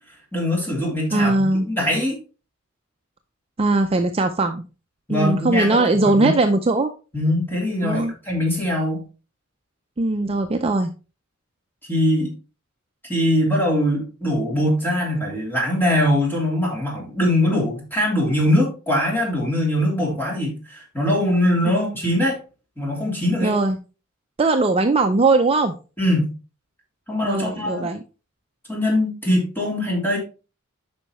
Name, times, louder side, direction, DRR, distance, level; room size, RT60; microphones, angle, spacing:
voice 1, 0.3-2.2 5.1-6.3 7.1-9.0 11.9-12.3 13.0-22.4 22.8-23.5 26.0-26.3 27.1-27.9 28.7-30.2, left 1 dB, 10° left, -3 dB, 3.0 m, -22 dB
voice 2, 1.1-1.7 3.6-4.6 5.1-6.9 7.8-8.1 10.0-10.9 21.7-21.9 23.4-23.8 24.4-25.7 27.2-28.0, right 2 dB, 25° right, 6 dB, 0.4 m, -20 dB
8.6 x 5.5 x 3.0 m, 0.33 s
head